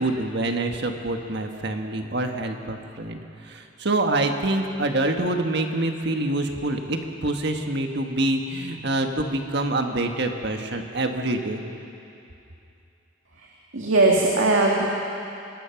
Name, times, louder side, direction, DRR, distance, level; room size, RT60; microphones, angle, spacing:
voice 1, 0.0-3.2 3.4-11.6, right 2 dB, 55° right, 4 dB, 1.6 m, -26 dB
voice 2, 13.4-14.9, right 2 dB, 80° right, -2 dB, 2.1 m, -20 dB
25.0 x 20.0 x 5.9 m, 2.7 s
head